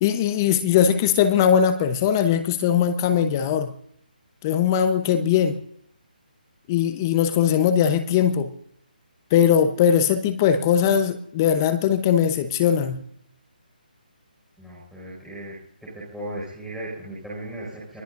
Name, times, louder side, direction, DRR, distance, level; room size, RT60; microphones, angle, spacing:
voice 1, 0.0-3.7 4.4-5.6 6.7-8.5 9.3-13.0, left 8 dB, 20° left, 10 dB, 0.9 m, -20 dB
voice 2, 14.6-15.5 15.9-18.0, right 1 dB, ahead, -10 dB, 5.5 m, -36 dB
25.0 x 20.5 x 2.6 m, 0.69 s
hypercardioid pair, 170°, 5 cm